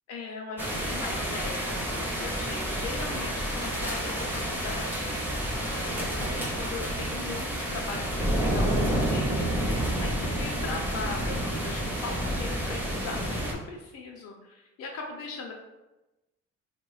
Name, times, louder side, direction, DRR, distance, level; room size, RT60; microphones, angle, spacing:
voice 1, 0.1-5.1 5.9-15.5, left 4 dB, 55° left, 0 dB, 0.4 m, -39 dB
sound 1, 0.6-13.5, equal, 5° right, 0.5 m, -29 dB
3.3 x 2.1 x 2.3 m, 1.0 s
cardioid pair, 90°, 30 cm